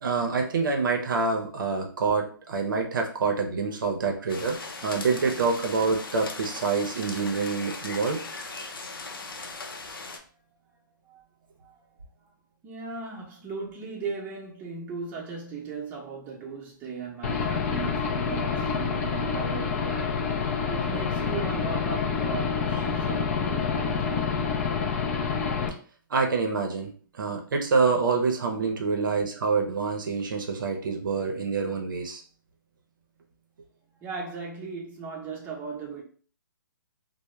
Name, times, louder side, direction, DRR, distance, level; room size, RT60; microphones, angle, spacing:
voice 1, 0.0-8.2 26.1-26.9 27.2-32.2, right 4 dB, 70° right, 0.6 m, -26 dB
sound 1, 4.3-10.2, left 3 dB, 90° left, 0.5 m, -38 dB
voice 2, 12.6-20.2 20.7-24.7 34.0-36.0, right 4 dB, 15° right, 0.7 m, -37 dB
Aircraft / Engine, 17.2-25.7, left 6 dB, 40° left, 0.4 m, -27 dB
2.1 x 2.1 x 3.0 m
hypercardioid pair, 145°, 11 cm